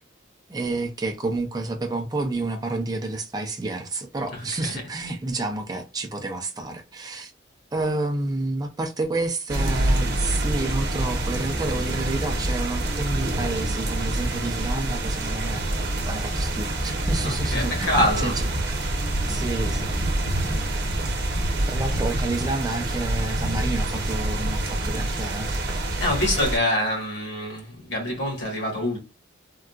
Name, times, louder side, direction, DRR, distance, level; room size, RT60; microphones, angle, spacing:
voice 1, 0.5-7.3 7.7-18.4 19.3-19.9 20.5-20.6 21.7-25.7, right 2 dB, 20° right, 0.4 m, -29 dB
voice 2, 4.3-4.8 17.2-18.4 26.0-29.0, left 1 dB, 60° left, 1.5 m, -25 dB
sound 1, 9.5-26.6, right 1 dB, 55° right, 0.8 m, -26 dB
3.7 x 2.3 x 2.3 m
head